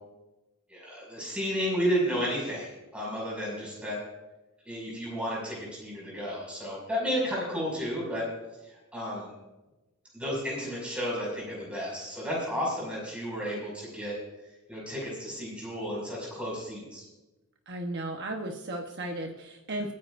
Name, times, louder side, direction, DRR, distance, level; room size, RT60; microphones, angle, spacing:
voice 1, 0.7-4.0 4.7-8.3 8.7-9.3 10.1-14.1 14.7-17.0, equal, 5° right, -4 dB, 6.0 m, -32 dB
voice 2, 17.7-19.9, right 1 dB, 50° right, 2 dB, 1.1 m, -35 dB
29.5 x 9.9 x 2.6 m, 1.1 s
head